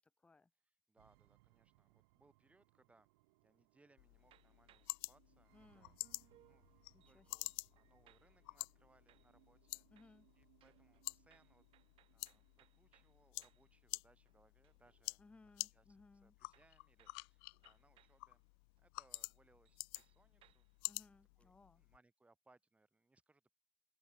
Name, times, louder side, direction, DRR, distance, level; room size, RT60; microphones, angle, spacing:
voice 1, 0.9-3.1 3.4-9.9 10.4-11.6 12.1-15.8 16.2-18.4 18.8-20.7 21.4-23.5, right 2 dB, 10° right, 3.9 m, -73 dB
sound 1, 1.0-15.0, right 24 dB, 75° right, 1.8 m, -74 dB
sound 2, 4.0-22.0, left 30 dB, 70° left, 0.5 m, -50 dB
sound 3, 4.2-5.1 6.0-8.6 9.1-9.7 10.0-13.8 14.1-15.1 16.5-18.3 18.8-18.9 19.1-19.4 19.6-20.8, right 14 dB, 45° right, 6.5 m, -72 dB
voice 2, 5.5-6.0 6.9-7.5 9.9-10.3 15.2-16.4 20.9-21.8, left 3 dB, 10° left, 0.6 m, -65 dB
supercardioid pair, 115°, 13 cm